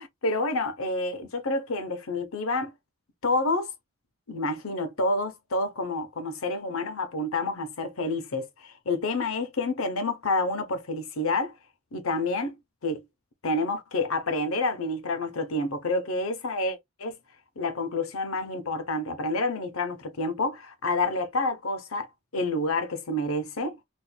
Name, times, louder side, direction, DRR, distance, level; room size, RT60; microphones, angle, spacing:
voice 1, 0.0-2.7 3.2-3.7 4.3-11.5 11.9-12.5 12.8-13.0 13.4-17.2 17.6-22.1 22.3-23.8, left 2 dB, 80° left, 0.8 m, -28 dB
4.2 x 2.5 x 2.2 m
head